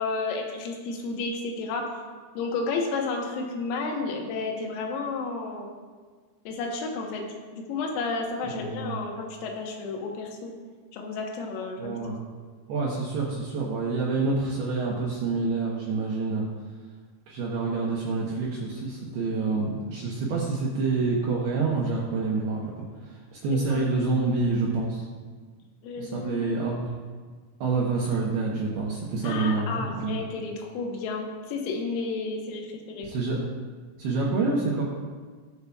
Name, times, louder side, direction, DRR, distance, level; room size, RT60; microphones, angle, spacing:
voice 1, 0.0-1.9 2.4-5.7 6.5-7.2 7.5-10.5 10.9-12.0 23.5-23.9 25.8-26.7 29.2-33.1, left 3 dB, 85° left, 1 dB, 3.9 m, -32 dB
voice 2, 8.5-9.0 11.8-12.2 12.7-16.5 17.3-25.1 26.0-26.9 27.6-30.2 33.0-33.4 34.0-34.8, right 3 dB, 75° right, -4 dB, 2.4 m, -27 dB
20.5 x 6.9 x 2.4 m, 1.5 s
omnidirectional pair, 5.9 m